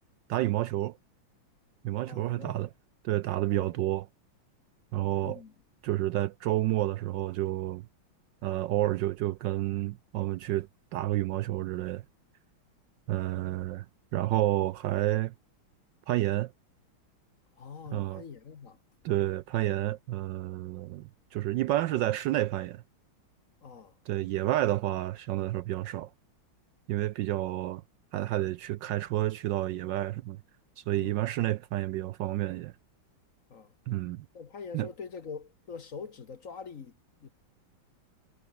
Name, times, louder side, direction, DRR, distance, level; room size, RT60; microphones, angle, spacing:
voice 1, 0.3-1.0 1.8-2.7 3.0-4.0 4.9-5.4 5.8-7.9 8.4-12.0 13.1-13.9 14.1-15.3 16.1-16.5 17.9-18.2 19.0-22.8 24.1-26.1 26.9-27.8 28.1-30.4 30.8-32.7 33.9-34.3 34.7-34.9, right 15 dB, 75° right, 1.1 m, -30 dB
voice 2, 2.1-2.7 3.5-3.8 5.2-5.5 17.6-18.8 23.6-23.9 30.9-31.2 33.5-33.7 34.3-36.9 37.2-37.3, left 5 dB, 45° left, 1.5 m, -44 dB
omnidirectional pair, 2.3 m